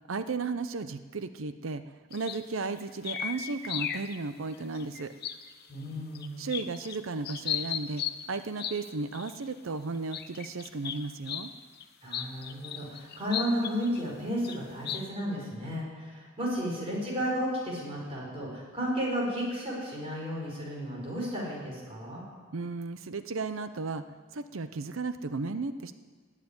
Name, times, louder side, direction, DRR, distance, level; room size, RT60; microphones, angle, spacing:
voice 1, 0.1-1.8 2.1-5.1 6.4-11.5 22.5-24.0 24.3-25.9, right 3 dB, 75° right, 11 dB, 0.6 m, -34 dB
sound 1, 2.1-4.2 4.5-5.6 6.1-7.0 7.2-8.8 9.1-9.3 10.1-11.5 11.8-11.9 12.1-14.0 14.4-14.6 14.9-15.0, left 9 dB, 50° left, 0.8 m, -35 dB
voice 2, 5.7-6.5 12.0-22.2, equal, 30° right, -3 dB, 5.1 m, -33 dB
18.5 x 7.5 x 9.8 m, 1.5 s
head